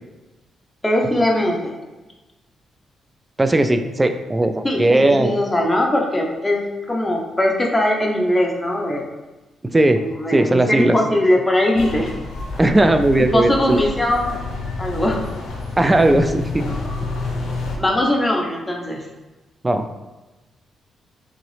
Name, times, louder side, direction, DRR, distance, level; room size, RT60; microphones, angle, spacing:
voice 1, 0.8-1.7 4.6-9.0 10.0-12.2 13.2-14.4 14.8-15.2 17.8-19.0, left 1 dB, 15° left, -1 dB, 0.7 m, -20 dB
voice 2, 3.4-5.3 9.6-10.0 10.3-11.0 12.6-13.8 15.8-16.7 19.6-19.9, right 1 dB, 20° right, 7 dB, 0.3 m, -17 dB
sound 1, 11.7-17.8, left 3 dB, 85° left, 0.7 m, -29 dB
3.7 x 3.0 x 3.2 m, 1.1 s
cardioid pair, 85°, 0 cm